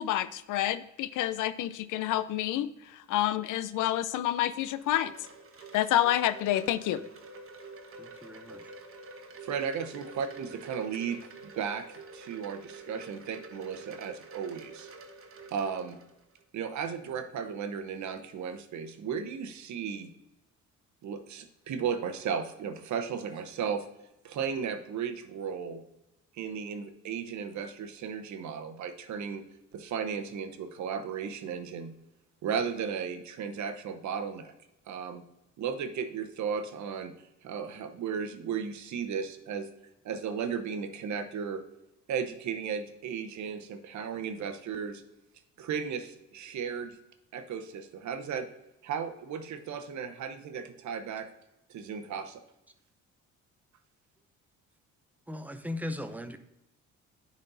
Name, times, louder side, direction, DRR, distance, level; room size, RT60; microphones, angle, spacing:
voice 1, 0.0-5.1 5.7-7.0, left 13 dB, 85° left, 14 dB, 0.5 m, -28 dB
Wind chime, 4.2-16.4, right 3 dB, 45° right, 1.1 m, -48 dB
voice 2, 8.0-8.7 55.3-56.4, left 1 dB, 5° right, 8 dB, 0.7 m, -38 dB
voice 3, 9.4-11.8 12.1-14.9 15.5-16.0 16.5-20.1 21.0-23.8 24.2-25.8 26.4-29.4 29.7-32.0 32.4-34.5 34.9-35.2 35.6-37.1 37.4-39.7 40.0-41.6 42.1-45.0 45.6-47.0 47.3-48.5 48.8-51.3 51.7-52.4, right 7 dB, 70° right, 8 dB, 0.9 m, -35 dB
10.0 x 4.3 x 3.9 m, 0.91 s
cardioid pair, 90°, 30 cm